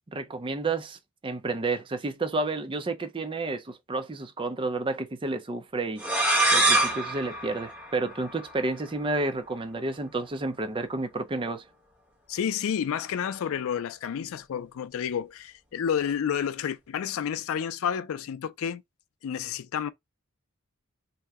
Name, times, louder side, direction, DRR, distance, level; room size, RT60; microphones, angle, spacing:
voice 1, 0.1-1.0 1.2-6.0 6.5-11.6, right 3 dB, 25° right, 0.5 m, -30 dB
sound 1, 6.0-8.6, right 2 dB, 5° right, 1.0 m, -25 dB
voice 2, 12.3-18.8 19.2-19.9, left 8 dB, 70° left, 0.3 m, -30 dB
2.7 x 2.1 x 3.4 m
head